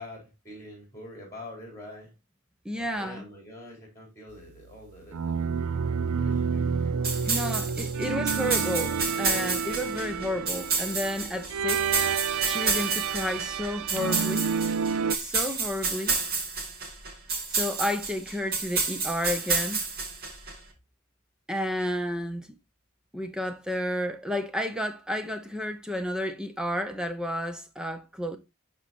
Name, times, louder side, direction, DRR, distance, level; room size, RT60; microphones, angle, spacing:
voice 1, 0.0-2.1 2.7-8.2, left 1 dB, 15° left, 3.8 m, -46 dB
voice 2, 2.6-3.3 7.3-11.9 12.4-14.5 15.2-16.2 17.5-19.8 21.5-22.5 23.1-28.4, left 1 dB, 5° right, 0.6 m, -31 dB
sound 1, 5.1-15.2, right 6 dB, 70° right, 0.4 m, -29 dB
sound 2, 7.0-20.5, right 4 dB, 45° right, 2.4 m, -30 dB
12.0 x 4.5 x 2.6 m
head